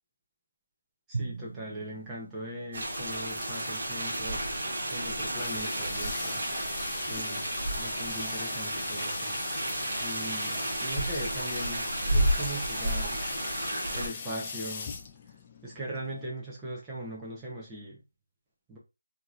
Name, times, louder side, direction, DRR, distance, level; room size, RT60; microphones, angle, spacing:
voice 1, 1.1-4.5 4.9-6.4 7.1-7.4 7.7-9.3 10.0-13.2 13.9-15.0 15.6-18.0 18.7-18.8, right 1 dB, 10° right, 0.7 m, -39 dB
Drum, 1.1-3.5, right 4 dB, 55° right, 0.4 m, -40 dB
sound 1, 2.7-14.1, right 1 dB, 35° right, 1.3 m, -32 dB
Water tap faucet / Sink (filling or washing), 5.4-16.3, left 5 dB, 20° left, 0.3 m, -41 dB
3.6 x 2.9 x 2.4 m
figure-of-eight pair, 175°, 0 cm